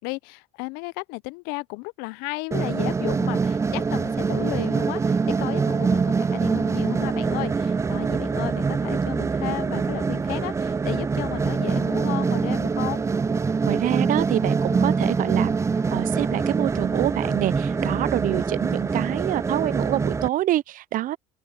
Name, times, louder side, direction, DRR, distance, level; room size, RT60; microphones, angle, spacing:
voice 1, 0.0-13.0, left 26 dB, 70° left, 1.0 m, -34 dB
sound 1, 2.5-20.3, right 5 dB, 15° right, 0.4 m, -24 dB
voice 2, 13.6-15.6 15.9-21.2, right 14 dB, 55° right, 0.9 m, -26 dB
open air
hypercardioid pair, 65°, 17 cm